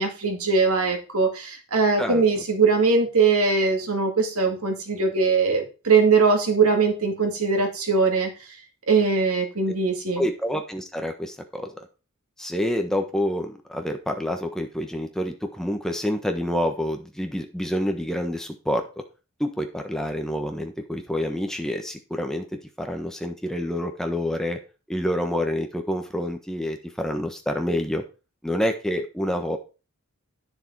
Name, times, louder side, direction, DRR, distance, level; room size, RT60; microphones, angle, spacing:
voice 1, 0.0-8.3 8.9-10.2, right 4 dB, 85° right, 4 dB, 2.4 m, -21 dB
voice 2, 2.0-2.4 10.2-11.7 12.4-18.8 19.4-22.5 22.8-24.6 24.9-28.0 28.4-29.6, equal, ahead, 4 dB, 1.2 m, -27 dB
10.0 x 6.8 x 4.7 m, 0.33 s
head